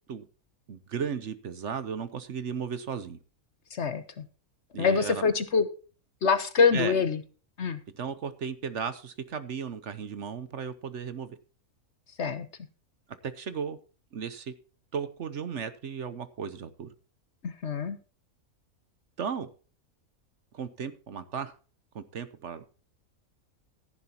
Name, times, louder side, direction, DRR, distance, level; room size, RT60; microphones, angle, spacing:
voice 1, 0.7-3.2 4.7-5.3 6.7-7.0 8.0-11.4 13.2-13.8 14.1-14.5 14.9-16.9 19.2-19.5 20.5-21.5 21.9-22.6, right 6 dB, 55° right, 13 dB, 1.1 m, -35 dB
voice 2, 4.8-5.7 6.2-7.2 7.6-7.8 12.2-12.5 17.4-18.0, left 5 dB, 50° left, 11 dB, 1.2 m, -25 dB
14.0 x 11.0 x 2.9 m, 0.36 s
omnidirectional pair, 1.5 m